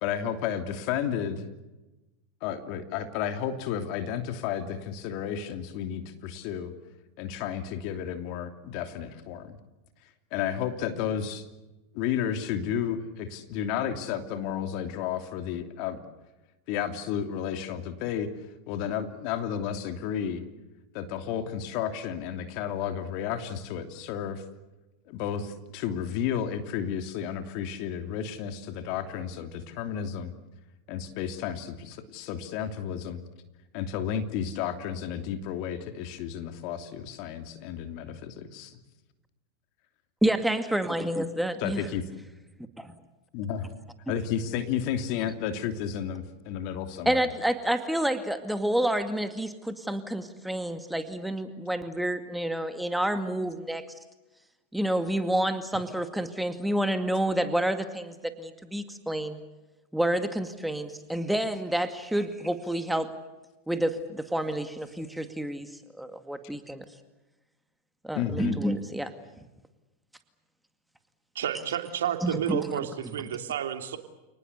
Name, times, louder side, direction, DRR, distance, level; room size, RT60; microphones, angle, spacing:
voice 1, 0.0-1.5 2.4-6.7 7.2-9.6 10.3-11.4 11.9-16.0 16.7-18.3 18.7-20.4 20.9-24.4 25.1-30.3 30.9-33.2 33.7-38.8 41.6-42.0 43.3-43.7 44.1-47.3 55.7-55.9 68.1-68.6, left 9 dB, 55° left, 8 dB, 2.9 m, -32 dB
voice 2, 40.2-41.8 42.8-42.9 47.1-53.9 54.7-59.4 59.9-63.1 63.7-65.7 66.0-66.8 68.0-69.1 72.2-72.7, right 1 dB, 5° right, 8 dB, 2.2 m, -29 dB
voice 3, 71.3-74.0, right 9 dB, 80° right, 6 dB, 3.0 m, -31 dB
29.5 x 19.5 x 8.3 m, 1.1 s
hypercardioid pair, 105°, 0 cm